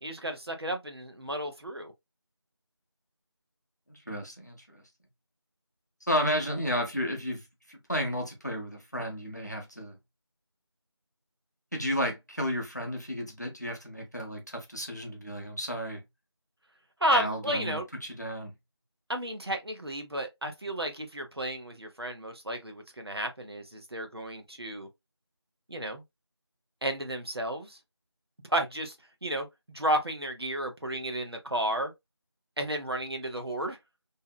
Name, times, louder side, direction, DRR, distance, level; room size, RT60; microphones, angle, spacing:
voice 1, 0.0-1.9 17.0-17.8 19.1-24.9 25.7-26.0 26.8-27.8 28.5-29.0 29.2-29.5 29.7-31.9 32.6-33.8, right 1 dB, 60° right, 0.7 m, -32 dB
voice 2, 3.9-4.8 6.1-10.0 11.7-16.0 17.1-18.5, equal, 40° left, 0.7 m, -33 dB
2.6 x 2.1 x 2.3 m
figure-of-eight pair, 180°, 15 cm